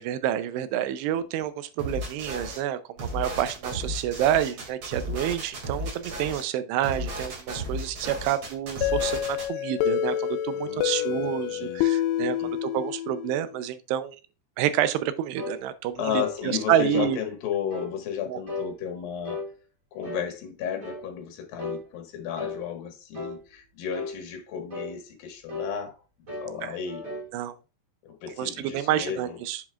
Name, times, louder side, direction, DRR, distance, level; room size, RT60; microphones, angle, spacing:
voice 1, 0.0-12.4 12.6-14.2 14.6-17.2 18.3-18.4 26.6-26.7 27.3-27.6 28.4-29.6, right 11 dB, 85° right, 2.8 m, -28 dB
sound 1, 1.8-2.6 3.0-6.4 6.8-9.5, equal, 45° right, 3.2 m, -34 dB
voice 2, 7.6-8.0 10.5-11.9 12.2-12.5 16.0-19.4 19.9-26.0 26.4-27.0 28.0-29.4, left 8 dB, 70° left, 3.1 m, -34 dB
sound 2, 8.8-13.5, left 12 dB, 90° left, 2.7 m, -28 dB
sound 3, 15.3-15.6 16.1-16.4 16.9-17.2 17.7-17.9 18.5-18.7 19.2-19.5 20.0-20.3 20.8-21.0 21.6-21.8 22.3-22.6 23.1-23.4 23.9-24.2 24.7-24.9 25.5-25.7 26.3-26.5 26.9-27.3, left 2 dB, 30° right, 1.6 m, -35 dB
7.6 x 7.1 x 2.4 m
omnidirectional pair, 4.8 m